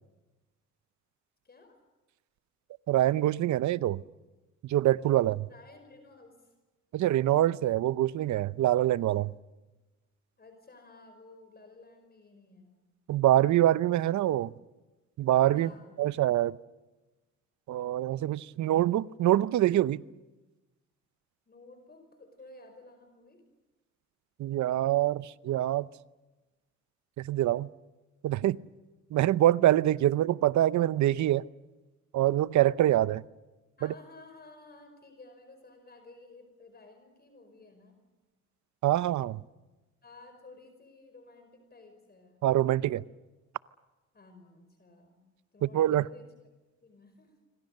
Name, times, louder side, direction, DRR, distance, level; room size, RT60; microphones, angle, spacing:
voice 1, 1.4-1.8 5.2-6.5 10.4-12.7 15.5-16.2 21.5-23.4 33.8-38.0 40.0-42.4 44.1-45.2 45.5-46.3 46.8-47.3, left 3 dB, 30° left, 5.2 m, -54 dB
voice 2, 2.9-4.0 4.6-5.5 6.9-9.3 13.1-14.5 15.2-15.7 16.0-16.5 17.7-20.0 24.4-25.9 27.2-27.7 28.2-28.6 29.1-31.4 32.1-33.2 33.8-33.9 38.8-39.4 42.4-43.0 45.6-46.0, right 13 dB, 70° right, 0.7 m, -25 dB
27.5 x 25.5 x 6.6 m
cardioid pair, 90°, 30 cm